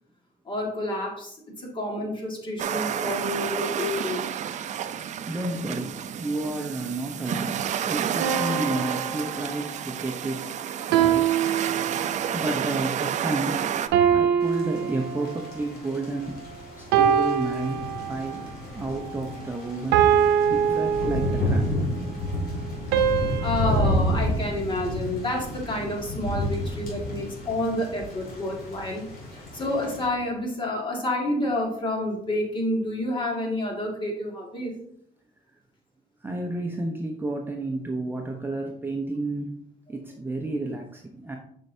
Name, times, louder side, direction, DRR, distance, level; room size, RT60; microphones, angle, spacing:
voice 1, 0.5-4.3 20.6-20.7 23.4-29.1 29.3-34.8, left 1 dB, 30° left, 0 dB, 1.9 m, -29 dB
sound 1, 2.6-13.9, right 9 dB, 45° right, 0.4 m, -30 dB
voice 2, 5.3-10.4 10.9-11.3 12.3-13.7 14.1-16.4 16.8-18.5 18.7-20.1 20.5-21.8 36.2-39.6 39.9-41.4, right 2 dB, 10° right, 1 dB, 0.7 m, -31 dB
sound 2, 8.2-9.9 10.9-12.4 13.9-15.6 16.9-18.4 19.9-21.7 22.9-24.0, right 8 dB, 85° right, 0.7 m, -24 dB
Thunder / Rain, 14.4-30.1, left 1 dB, 65° left, 2.7 m, -31 dB
7.5 x 5.4 x 2.7 m, 0.67 s
cardioid pair, 110°, 17 cm